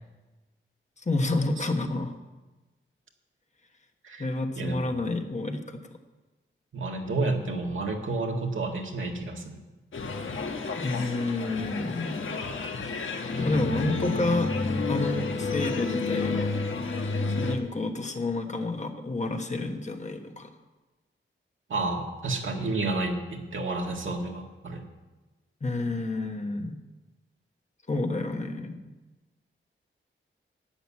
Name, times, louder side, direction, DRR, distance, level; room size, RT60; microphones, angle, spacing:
voice 1, 1.0-2.1 4.2-5.8 10.8-12.2 13.4-14.5 14.9-16.5 17.3-20.5 25.6-26.8 27.9-28.8, left 2 dB, 35° left, 5 dB, 1.2 m, -29 dB
voice 2, 6.7-9.4 21.7-24.8, right 2 dB, 70° right, 2 dB, 1.9 m, -30 dB
sound 1, 9.9-17.6, left 3 dB, 70° left, 1.3 m, -30 dB
11.5 x 8.0 x 9.7 m, 1.2 s
wide cardioid pair, 145°, 21 cm